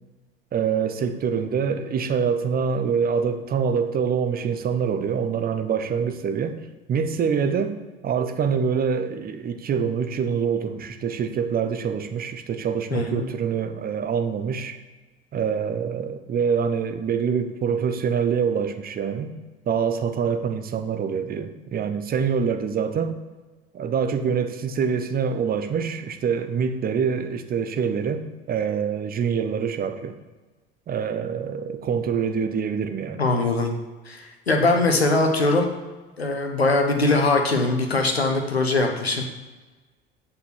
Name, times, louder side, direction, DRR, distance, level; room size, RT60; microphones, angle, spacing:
voice 1, 0.5-6.6 6.9-7.8 8.0-14.8 15.3-19.3 19.7-23.2 23.7-30.2 30.9-33.2, right 6 dB, 30° right, 8 dB, 0.9 m, -25 dB
voice 2, 12.9-13.3 33.2-33.7 34.0-35.7 36.2-39.2, left 2 dB, 85° left, 3 dB, 1.2 m, -21 dB
8.1 x 5.7 x 6.1 m, 1.2 s
figure-of-eight pair, 65°, 30 cm